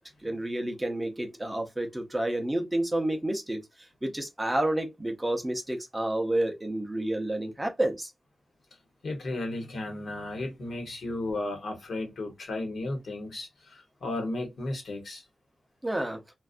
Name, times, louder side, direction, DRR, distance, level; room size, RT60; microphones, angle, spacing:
voice 1, 0.2-8.1 15.8-16.2, right 1 dB, 10° right, 0.6 m, -30 dB
voice 2, 9.0-15.2, left 2 dB, 70° left, 1.0 m, -34 dB
2.5 x 2.2 x 2.5 m
wide cardioid pair, 165°, 0 cm